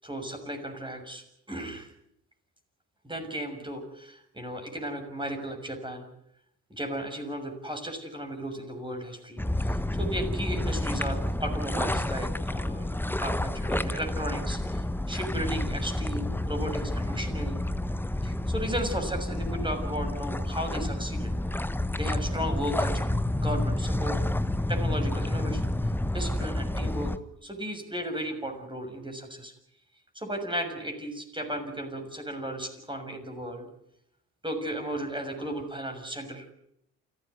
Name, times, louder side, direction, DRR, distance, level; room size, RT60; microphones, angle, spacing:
voice 1, 0.0-1.9 3.0-6.1 6.7-17.6 18.2-21.3 21.9-24.2 24.7-25.6 26.1-27.1 27.4-29.5 30.1-33.7 34.4-36.5, right 1 dB, 10° right, 4 dB, 6.5 m, -35 dB
sound 1, 9.4-27.2, left 1 dB, 5° left, 1.2 m, -29 dB
29.0 x 13.5 x 9.6 m, 0.76 s
hypercardioid pair, 50°, 45 cm